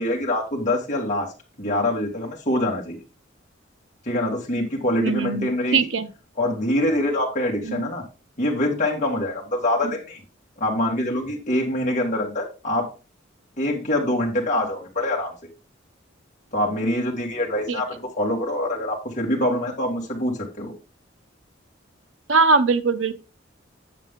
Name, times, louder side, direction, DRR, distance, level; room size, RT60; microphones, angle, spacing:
voice 1, 0.0-1.3 1.6-3.0 4.0-5.8 6.4-8.0 8.4-10.2 10.6-12.9 13.6-15.3 16.5-20.7, left 1 dB, 40° left, -2 dB, 2.0 m, -24 dB
voice 2, 5.0-6.1 7.6-7.8 17.7-17.8 22.3-23.1, right 4 dB, 75° right, 10 dB, 0.7 m, -21 dB
7.6 x 7.3 x 3.7 m, 0.30 s
head